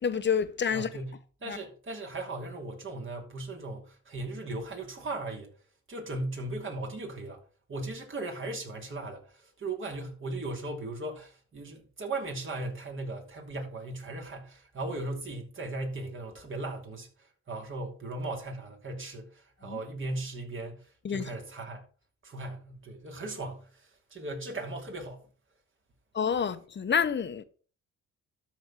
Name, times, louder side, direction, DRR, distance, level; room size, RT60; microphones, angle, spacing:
voice 1, 0.0-0.9 1.5-1.6 19.6-19.8 21.0-21.3 26.1-27.4, left 7 dB, 40° left, 1.0 m, -28 dB
voice 2, 0.7-1.2 1.4-5.5 5.9-7.4 7.7-21.8 22.2-25.2, right 2 dB, 40° right, 3.0 m, -37 dB
12.5 x 4.4 x 4.9 m
cardioid pair, 90°, 30 cm